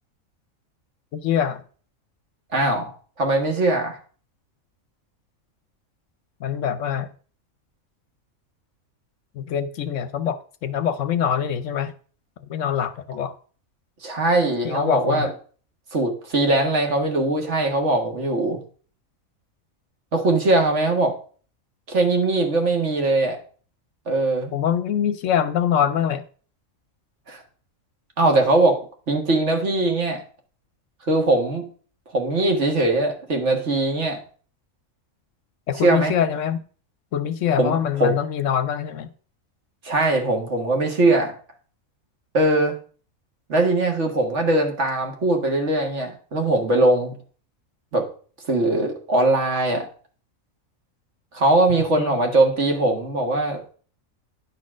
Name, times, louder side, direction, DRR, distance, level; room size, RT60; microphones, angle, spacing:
voice 1, 1.1-1.6 6.4-7.1 9.3-11.9 12.4-13.3 14.6-15.3 24.5-26.2 35.7-36.6 37.1-39.1 51.9-52.1, left 8 dB, 70° left, 13 dB, 0.9 m, -24 dB
voice 2, 2.5-2.9 3.2-4.0 14.0-15.3 15.9-18.6 20.1-21.1 21.9-23.4 24.1-24.5 27.3-27.4 28.2-28.8 29.1-30.2 31.0-31.6 32.1-34.2 35.8-36.1 37.6-38.2 39.8-41.3 42.3-42.8 43.5-47.1 47.9-48.0 48.5-49.9 51.3-53.6, right 2 dB, 55° right, 3 dB, 1.9 m, -21 dB
9.8 x 4.2 x 6.1 m, 0.42 s
omnidirectional pair, 1.4 m